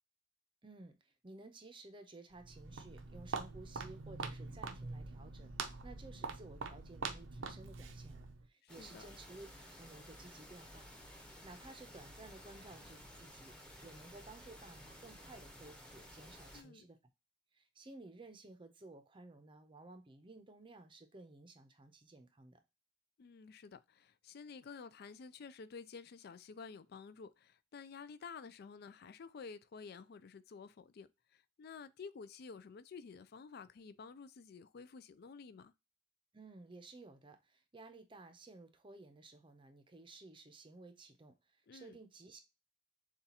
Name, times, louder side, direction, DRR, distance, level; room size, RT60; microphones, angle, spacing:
voice 1, 0.6-5.5 5.8-9.5 9.8-10.9 11.4-13.5 13.8-17.0 17.5-22.6 36.3-42.4, right 2 dB, 25° right, 0.6 m, -55 dB
Walk footsteps, 2.3-8.5, right 4 dB, 80° right, 0.6 m, -44 dB
voice 2, 8.6-9.1 16.5-16.9 23.2-35.7 41.7-42.0, left 5 dB, 55° left, 0.4 m, -51 dB
sound 1, 8.7-16.6, equal, 5° left, 0.9 m, -55 dB
6.9 x 2.4 x 2.8 m
head